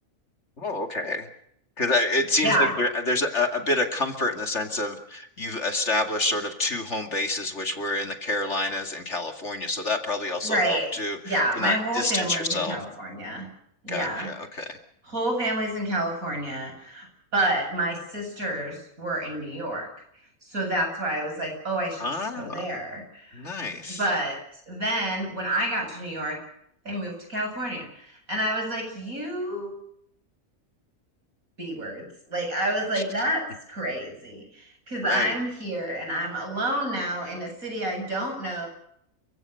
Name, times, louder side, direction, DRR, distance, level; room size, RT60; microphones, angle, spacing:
voice 1, 0.6-1.3 1.8-12.8 13.9-14.8 22.0-22.6 23.3-24.0 32.9-33.0 35.0-35.4, left 2 dB, 55° left, 5 dB, 2.7 m, -28 dB
voice 2, 2.4-2.7 10.4-13.5 13.8-14.3 15.0-17.1 17.3-19.9 20.5-23.4 24.0-24.4 24.7-26.4 26.9-29.8 31.6-38.7, right 1 dB, 85° right, 3 dB, 8.6 m, -29 dB
30.0 x 17.0 x 6.8 m, 0.71 s
omnidirectional pair, 1.4 m